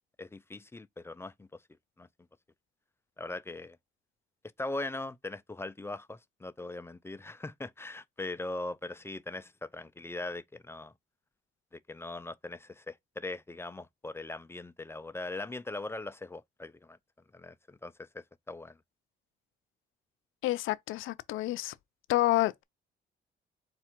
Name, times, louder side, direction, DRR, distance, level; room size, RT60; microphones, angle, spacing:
voice 1, 0.2-1.6 2.0-2.1 3.2-3.8 4.6-10.9 11.7-17.0 17.3-18.8, left 2 dB, 10° left, 0.3 m, -40 dB
voice 2, 20.4-21.7 22.1-22.6, left 16 dB, 85° left, 0.4 m, -29 dB
4.1 x 2.4 x 4.4 m
cardioid pair, 90°, 20 cm